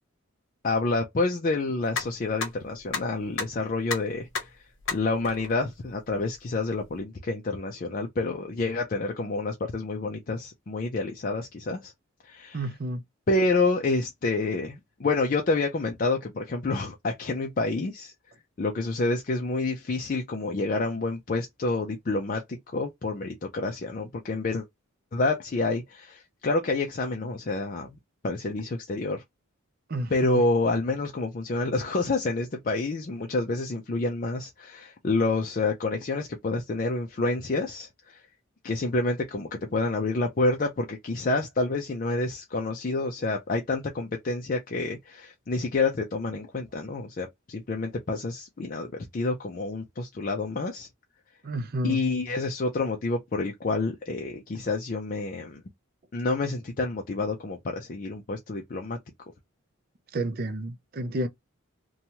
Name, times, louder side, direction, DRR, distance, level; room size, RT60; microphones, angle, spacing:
voice 1, 0.6-11.9 12.2-12.6 13.3-18.1 18.6-24.7 25.1-28.0 28.2-29.2 30.1-38.3 38.6-50.9 51.8-55.6 56.1-59.0, left 3 dB, 40° left, 0.4 m, -28 dB
sound 1, 1.8-7.0, left 5 dB, 60° left, 0.8 m, -36 dB
voice 2, 12.5-13.0 29.9-30.4 51.4-52.0 60.1-61.3, right 1 dB, 45° right, 0.5 m, -30 dB
2.9 x 2.2 x 2.7 m
head